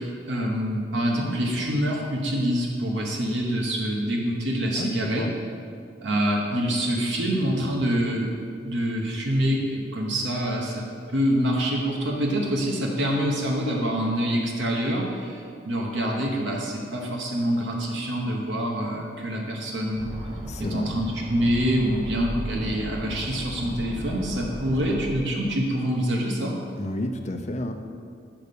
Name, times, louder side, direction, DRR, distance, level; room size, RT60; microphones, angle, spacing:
voice 1, 0.0-5.3 6.0-20.1 20.6-26.6, equal, 85° right, -1 dB, 1.0 m, -26 dB
voice 2, 4.8-5.3 20.5-20.9 26.8-27.7, left 1 dB, 40° left, 5 dB, 0.5 m, -31 dB
sound 1, 20.0-25.1, equal, 25° right, 1.1 m, -36 dB
5.7 x 5.4 x 6.8 m, 2.3 s
head